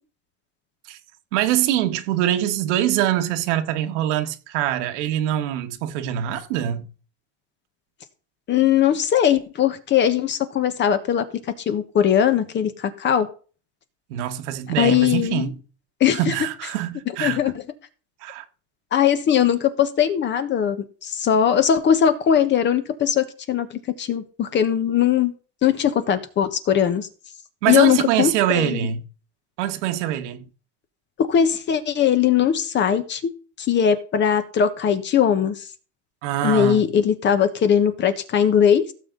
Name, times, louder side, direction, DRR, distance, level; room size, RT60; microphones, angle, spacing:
voice 1, 1.3-6.8 14.1-15.5 16.1-17.4 18.2-18.4 27.6-29.0 29.6-30.4 36.2-36.8, right 12 dB, 75° right, 1.7 m, -24 dB
voice 2, 8.5-11.2 11.7-13.3 14.8-15.5 16.0-16.3 17.2-17.5 18.9-20.8 21.0-23.7 24.0-25.3 25.6-27.1 27.7-28.8 31.2-33.3 33.6-35.6 36.4-38.9, left 9 dB, 30° left, 1.4 m, -20 dB
16.5 x 7.3 x 4.0 m
supercardioid pair, 145°, 36 cm